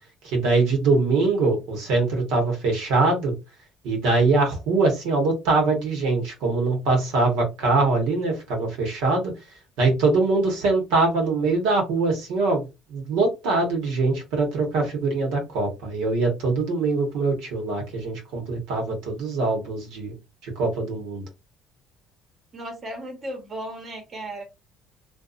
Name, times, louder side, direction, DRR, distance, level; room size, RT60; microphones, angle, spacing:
voice 1, 0.2-3.3 3.8-9.3 9.8-12.6 12.9-20.1 20.6-21.2, right 3 dB, 85° right, 1.0 m, -23 dB
voice 2, 22.5-24.4, right 1 dB, 40° right, 0.9 m, -35 dB
2.6 x 2.3 x 2.4 m
cardioid pair, 100°, 0 cm